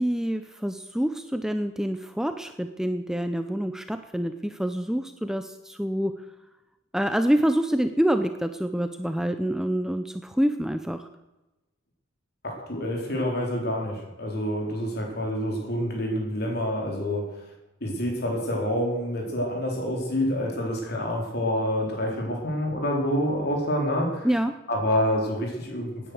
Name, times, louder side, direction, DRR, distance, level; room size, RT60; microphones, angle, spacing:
voice 1, 0.0-6.1 6.9-11.1 24.2-24.5, equal, 5° right, 8 dB, 0.6 m, -26 dB
voice 2, 12.4-17.5 17.8-24.3 24.7-26.1, equal, 55° left, 0 dB, 4.0 m, -27 dB
17.0 x 10.0 x 6.5 m, 1.0 s
head